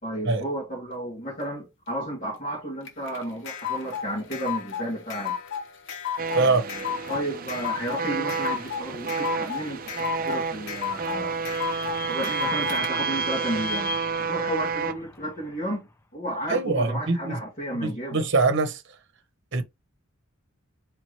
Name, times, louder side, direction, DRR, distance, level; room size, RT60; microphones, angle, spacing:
voice 1, 0.0-5.4 6.4-6.8 7.1-11.4 12.1-14.0 14.3-15.8 16.1-18.2, right 1 dB, 40° left, 2.4 m, -32 dB
sound 1, 2.9-12.9, left 8 dB, 60° left, 0.9 m, -33 dB
sound 2, 6.2-14.9, right 5 dB, 40° right, 0.5 m, -30 dB
Vehicle / Squeak, 10.3-15.7, equal, 15° left, 0.4 m, -37 dB
voice 2, 16.5-17.4 17.8-18.8 19.5-19.6, right 3 dB, 60° right, 0.9 m, -23 dB
4.5 x 3.5 x 3.0 m
head